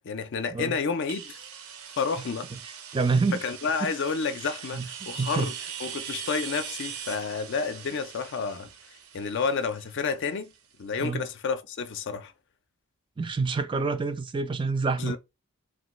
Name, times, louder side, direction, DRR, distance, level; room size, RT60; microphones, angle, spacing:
voice 1, 0.0-1.4 2.0-2.5 3.3-5.5 5.8-8.7 9.1-10.5 10.8-12.3 15.0-15.2, left 5 dB, 60° left, 0.4 m, -30 dB
sound 1, 1.1-10.7, right 8 dB, 85° right, 0.6 m, -41 dB
voice 2, 2.9-3.4 3.8-3.9 4.7-4.9 5.2-5.5 11.0-11.2 13.2-15.2, right 4 dB, 25° right, 0.3 m, -27 dB
3.1 x 2.2 x 3.0 m
head